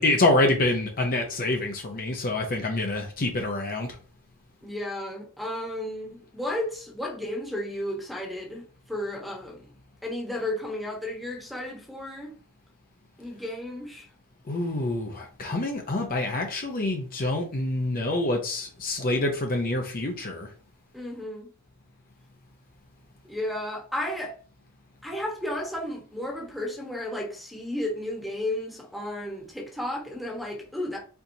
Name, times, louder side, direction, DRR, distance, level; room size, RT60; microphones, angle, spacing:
voice 1, 0.0-3.9 14.5-20.5, left 2 dB, 40° left, 0.6 m, -26 dB
voice 2, 4.6-9.6 10.0-12.3 13.2-14.1 20.9-21.5 23.3-24.3 25.0-31.0, left 1 dB, ahead, 1.1 m, -33 dB
4.5 x 3.9 x 2.7 m
head